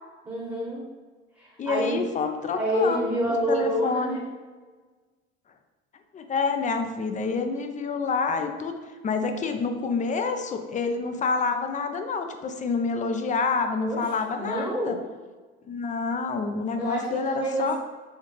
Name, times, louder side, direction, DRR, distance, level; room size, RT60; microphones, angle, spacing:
voice 1, 0.2-0.8 1.4-2.1 2.4-4.3 13.8-14.0 14.4-15.0 16.8-17.8, equal, 10° right, -3 dB, 1.1 m, -28 dB
voice 2, 1.6-3.1 3.5-4.2 6.1-8.7 9.0-15.0 15.7-17.8, left 4 dB, 20° left, 6 dB, 0.5 m, -28 dB
4.3 x 3.4 x 3.2 m, 1.4 s
figure-of-eight pair, 65°, 35 cm